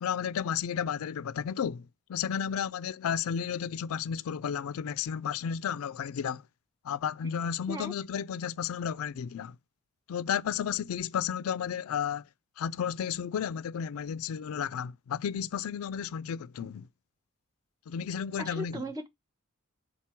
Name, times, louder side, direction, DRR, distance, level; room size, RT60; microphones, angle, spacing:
voice 1, 0.0-6.4 6.8-9.6 10.1-12.2 12.6-16.9 17.9-18.8, left 8 dB, 85° left, 0.4 m, -33 dB
voice 2, 18.4-19.1, equal, 20° right, 0.9 m, -37 dB
5.9 x 4.0 x 4.3 m
head